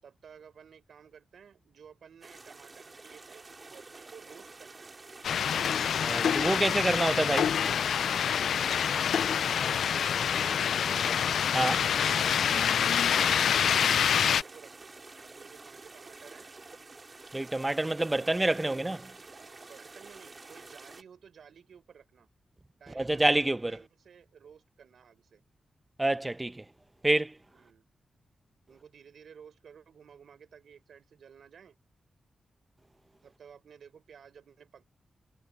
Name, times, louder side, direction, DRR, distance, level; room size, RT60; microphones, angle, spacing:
voice 1, 0.0-4.9 6.6-7.3 8.0-11.1 12.6-15.0 15.2-16.5 18.0-18.9 19.3-22.3 22.8-25.4 27.5-27.8 28.7-31.8 33.2-34.8, right 7 dB, 80° right, 4.9 m, -54 dB
sound 1, 2.2-21.0, right 3 dB, 35° right, 3.9 m, -49 dB
sound 2, 5.2-14.4, left 8 dB, 85° left, 0.3 m, -26 dB
voice 2, 6.0-7.5 11.5-11.9 17.3-19.0 22.9-23.8 26.0-26.6 27.0-27.4, right 2 dB, 20° right, 0.9 m, -27 dB
cardioid pair, 60°, 0 cm